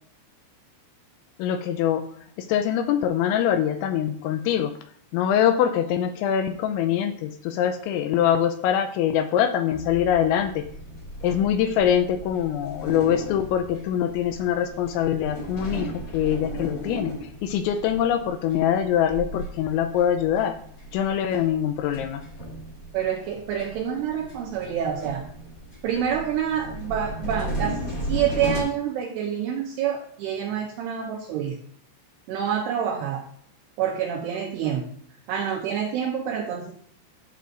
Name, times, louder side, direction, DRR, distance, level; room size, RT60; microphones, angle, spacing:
voice 1, 1.4-2.1 2.4-4.7 5.1-10.7 11.2-20.6 20.9-22.2, left 9 dB, 85° left, 8 dB, 2.7 m, -23 dB
sound 1, 9.7-28.6, right 1 dB, 35° left, 1.3 m, -36 dB
voice 2, 22.9-25.3 25.8-31.6 32.3-33.2 33.8-34.9 35.3-36.7, right 8 dB, 80° right, 0 dB, 2.4 m, -27 dB
12.0 x 7.7 x 2.5 m, 0.63 s
omnidirectional pair, 5.6 m